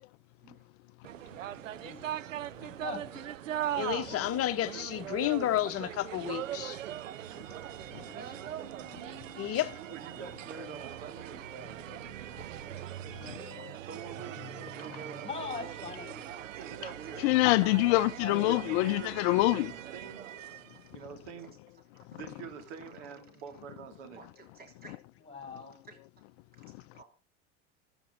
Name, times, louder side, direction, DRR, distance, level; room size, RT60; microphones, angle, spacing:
sound 1, 1.0-20.9, right 12 dB, 90° right, 0.6 m, -41 dB
voice 1, 1.5-2.1 2.8-3.1 14.2-16.2 18.2-18.5 25.2-25.8, left 4 dB, 15° left, 6.8 m, -42 dB
voice 2, 3.7-6.8 9.3-9.8, left 13 dB, 40° left, 1.1 m, -31 dB
voice 3, 8.1-8.5 13.5-13.6 14.8-15.2 16.2-16.5 16.8-16.9 18.7-18.8 21.0-21.1 22.1-22.2 24.2-25.0 25.8-26.0 26.9-27.0, right 4 dB, 25° right, 3.4 m, -51 dB
voice 4, 9.9-11.9 13.8-14.5 14.7-15.7 16.5-17.3 18.5-19.2 19.5-20.3 20.9-21.6 22.1-24.2, right 7 dB, 65° right, 3.1 m, -46 dB
voice 5, 17.2-19.7, left 20 dB, 55° left, 0.6 m, -25 dB
25.5 x 9.0 x 3.9 m
hypercardioid pair, 90°, 37 cm